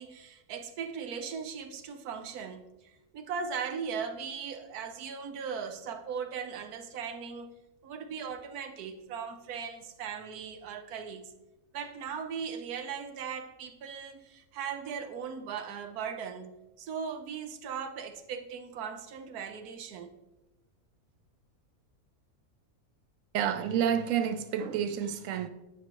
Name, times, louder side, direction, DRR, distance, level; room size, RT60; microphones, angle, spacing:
voice 1, 0.0-7.5 7.8-11.3 11.7-20.1, right 6 dB, 90° right, 1.3 m, -38 dB
voice 2, 23.3-25.5, right 8 dB, 70° right, 0.9 m, -29 dB
9.5 x 5.5 x 3.0 m
omnidirectional pair, 1.6 m